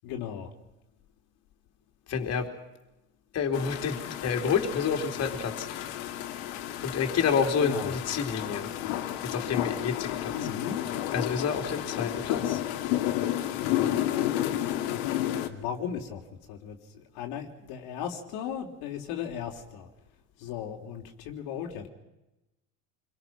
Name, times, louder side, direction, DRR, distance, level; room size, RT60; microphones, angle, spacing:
voice 1, 0.0-0.5 7.6-7.9 10.3-10.9 15.5-19.9 20.4-21.9, left 8 dB, 60° left, 1 dB, 3.3 m, -36 dB
voice 2, 2.1-2.5 3.3-5.7 6.8-8.7 9.2-10.3 11.1-12.6, left 6 dB, 35° left, 4 dB, 3.8 m, -29 dB
sound 1, 3.5-15.5, left 12 dB, 75° left, 2.9 m, -31 dB
28.5 x 23.0 x 6.0 m, 0.97 s
supercardioid pair, 130°, 42 cm